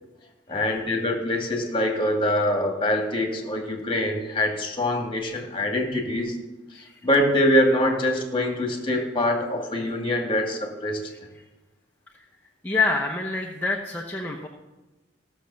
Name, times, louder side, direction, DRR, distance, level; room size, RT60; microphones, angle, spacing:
voice 1, 0.5-6.4 6.8-11.0, left 1 dB, 25° left, 2 dB, 2.0 m, -24 dB
voice 2, 12.6-14.5, left 3 dB, 10° left, -2 dB, 0.9 m, -26 dB
15.0 x 6.4 x 7.0 m, 1.1 s
head